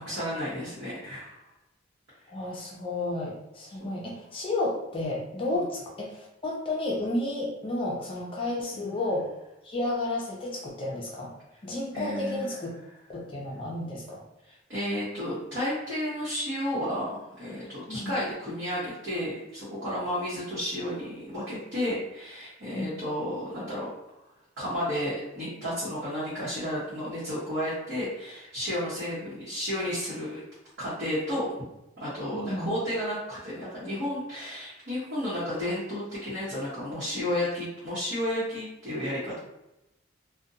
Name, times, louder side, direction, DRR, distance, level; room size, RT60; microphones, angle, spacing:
voice 1, 0.0-1.4 3.8-4.0 5.5-5.6 8.7-8.9 11.9-12.5 14.5-23.9 24.6-30.4 30.8-31.6 32.0-39.4, left 1 dB, 60° right, -10 dB, 1.0 m, -32 dB
voice 2, 2.3-9.3 9.6-11.3 11.6-12.7 13.1-14.2 17.9-18.1 22.7-23.0 32.3-32.7, left 2 dB, 25° left, -2 dB, 0.4 m, -32 dB
2.5 x 2.1 x 2.6 m, 0.90 s
head